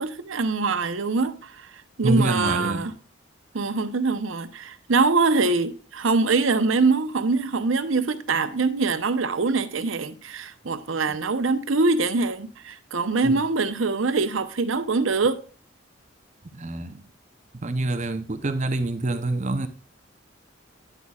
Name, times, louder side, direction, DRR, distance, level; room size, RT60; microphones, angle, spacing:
voice 1, 0.0-1.7 2.0-2.9 3.5-15.4, right 3 dB, 85° right, 0.8 m, -23 dB
voice 2, 2.0-2.9 11.1-11.2 13.2-13.4 16.5-17.1 17.6-19.7, right 2 dB, 35° right, 0.7 m, -26 dB
10.0 x 8.3 x 2.4 m
head